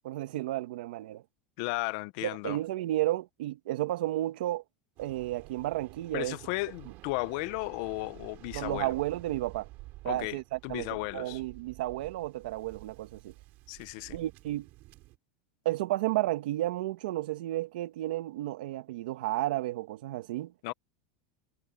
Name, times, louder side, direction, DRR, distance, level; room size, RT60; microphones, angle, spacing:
voice 1, 0.0-1.2 2.2-4.6 5.0-6.4 8.5-9.7 10.0-13.3 14.1-14.7 15.6-20.5, right 15 dB, 70° right, 1.7 m, -32 dB
voice 2, 1.6-2.6 6.1-8.9 10.1-10.4 10.6-11.4 13.7-14.2 20.6-20.7, left 24 dB, 50° left, 0.6 m, -35 dB
Waves surf, 5.0-15.2, right 19 dB, 40° right, 5.2 m, -50 dB
supercardioid pair, 165°, 5 cm